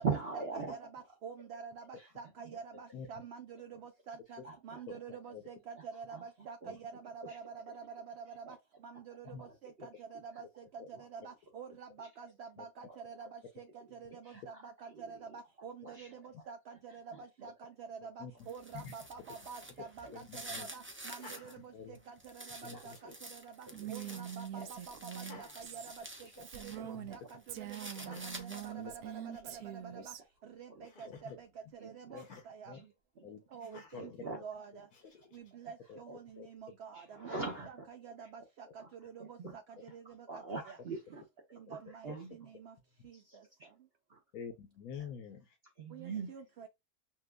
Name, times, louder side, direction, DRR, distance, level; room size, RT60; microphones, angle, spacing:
voice 1, 0.0-0.7 2.0-2.1 2.4-2.6 4.4-4.8 5.8-5.9 6.1-6.2 6.6-6.7 7.2-7.4 8.4-8.6 9.4-9.5 10.9-11.0 12.0-12.1 12.9-13.0 14.2-14.6 14.9-15.2 15.8-16.1 17.1-17.2 20.0-20.1 22.7-23.1 23.7-23.9 24.5-24.7 25.3-25.4 26.7-26.8 28.0-28.2 29.4-29.6 29.9-30.0 30.7-30.9 31.8-32.2 32.7-32.8 33.2-33.3 34.0-34.4 35.5-35.6 36.1-36.2 36.9-37.9 38.2-38.3 38.8-38.9 39.2-39.6 40.3-41.2 41.7-42.5 43.1-43.7 44.1-44.2 45.8-46.3, right 4 dB, 50° right, 1.1 m, -42 dB
voice 2, 0.7-7.4 7.7-8.6 8.8-13.6 13.9-22.9 23.3-25.9 26.6-27.2 27.6-29.1 30.0-30.1 30.6-31.1 31.4-31.5 31.8-32.7 33.5-34.9 35.3-38.7 39.0-39.4 39.9-40.3 40.7-40.8 41.7-42.1 42.4-42.7 43.0-43.2 45.9-46.7, right 6 dB, 65° right, 0.7 m, -48 dB
sound 1, 18.4-21.5 21.9-26.8 27.1-28.9, right 1 dB, 20° right, 0.3 m, -49 dB
voice 3, 20.1-20.7 21.7-22.0 22.6-23.0 26.4-26.5 26.9-27.1 28.1-28.2 28.8-28.9 31.0-31.4 32.1-32.9 33.2-33.4 33.7-34.3 35.0-35.1 35.9-36.0 36.4-36.5 40.5-40.6 42.1-42.2 44.3-45.6, left 6 dB, 80° left, 1.2 m, -47 dB
Laughter, 21.0-22.1 22.5-23.2 23.9-24.4 25.2-26.4 26.8-27.0 27.9-28.5 29.0-29.1 29.3-29.7 30.8-31.4 32.1-32.5 33.6-34.1 34.9-35.5, left 3 dB, 45° left, 0.8 m, -57 dB
Female speech woman speaking, 23.7-27.2 27.5-30.2, right 11 dB, 80° right, 1.0 m, -44 dB
5.9 x 2.4 x 2.2 m
omnidirectional pair, 1.5 m